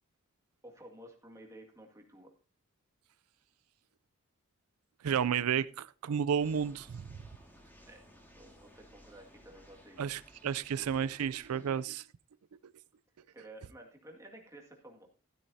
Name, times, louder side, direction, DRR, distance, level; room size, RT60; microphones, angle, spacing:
voice 1, 0.6-2.3 7.9-8.0 8.3-10.1 13.3-15.1, right 1 dB, 15° right, 2.0 m, -53 dB
voice 2, 5.0-7.0 10.0-12.0, right 8 dB, 90° right, 0.4 m, -32 dB
sound 1, 6.4-11.8, equal, 10° left, 1.9 m, -59 dB
13.0 x 12.5 x 2.7 m
head